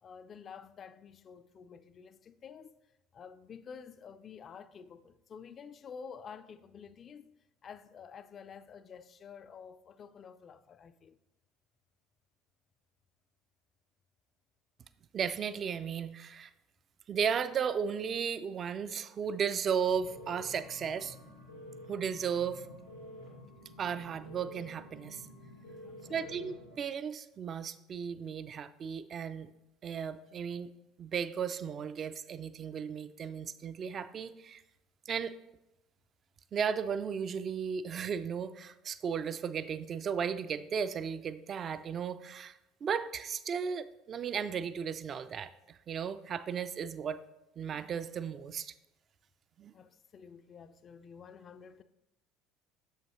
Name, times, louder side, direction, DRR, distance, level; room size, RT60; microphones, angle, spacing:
voice 1, 0.0-2.7 3.1-7.4 7.6-11.2 25.8-26.4 49.7-51.8, left 6 dB, 40° left, 0.3 m, -50 dB
voice 2, 15.1-16.5 17.1-21.2 21.9-22.7 23.8-25.2 26.1-29.5 29.8-30.7 31.0-34.6 35.1-35.4 36.5-47.2 47.6-48.7 49.6-49.7, right 7 dB, 40° right, 0.3 m, -35 dB
sound 1, 19.8-26.7, left 1 dB, 85° left, 1.9 m, -50 dB
6.9 x 5.6 x 3.0 m
figure-of-eight pair, 65°, 0 cm